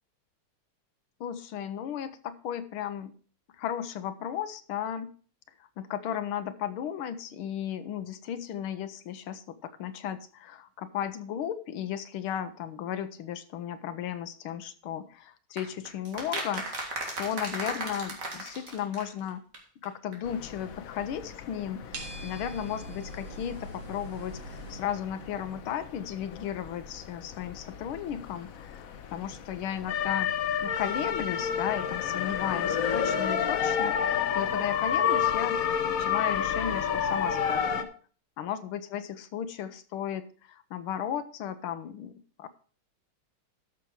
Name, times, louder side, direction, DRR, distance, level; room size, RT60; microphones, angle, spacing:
voice 1, 1.2-3.1 3.6-5.1 5.8-19.4 19.8-30.3 30.6-35.6 35.9-37.9 38.4-42.5, left 9 dB, 90° left, 11 dB, 1.7 m, -35 dB
sound 1, 15.6-19.6 19.8-19.9 20.1-20.2, right 2 dB, 40° right, 2.3 m, -36 dB
sound 2, 20.3-37.8, left 8 dB, 60° left, 0.9 m, -31 dB
sound 3, 21.9-24.8, right 1 dB, 85° right, 2.6 m, -42 dB
13.0 x 6.0 x 4.8 m, 0.42 s
omnidirectional pair, 2.3 m